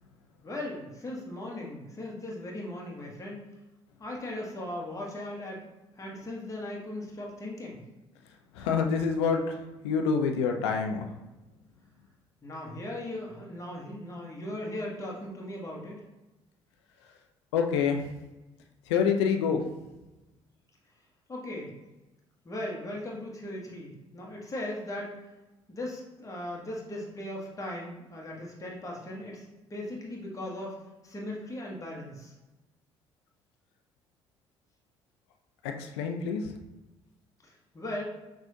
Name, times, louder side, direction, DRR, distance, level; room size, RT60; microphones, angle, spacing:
voice 1, 0.4-3.4 4.0-5.7 6.0-7.8 12.4-16.0 21.3-21.7 22.4-25.2 25.7-30.8 31.0-32.3 37.4-38.0, left 1 dB, 20° left, -2 dB, 1.2 m, -38 dB
voice 2, 8.6-9.5 9.8-11.1 17.5-18.0 18.9-19.6 35.8-36.4, left 6 dB, 70° left, 4 dB, 0.5 m, -26 dB
6.0 x 2.4 x 2.8 m, 1.0 s
figure-of-eight pair, 50°, 15 cm